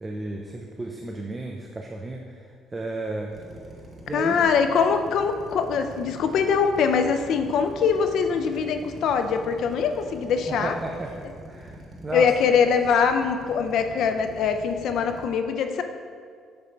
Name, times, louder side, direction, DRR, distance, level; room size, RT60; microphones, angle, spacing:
voice 1, 0.0-2.5 2.7-3.3 4.1-4.5 10.5-12.3, right 2 dB, 15° right, 1 dB, 0.4 m, -33 dB
Drill, 3.3-15.3, right 1 dB, 35° right, 0.9 m, -44 dB
voice 2, 4.1-10.7 12.1-15.8, left 6 dB, 60° left, 7 dB, 0.5 m, -23 dB
6.8 x 5.1 x 4.5 m, 2.1 s
cardioid pair, 150°, 0 cm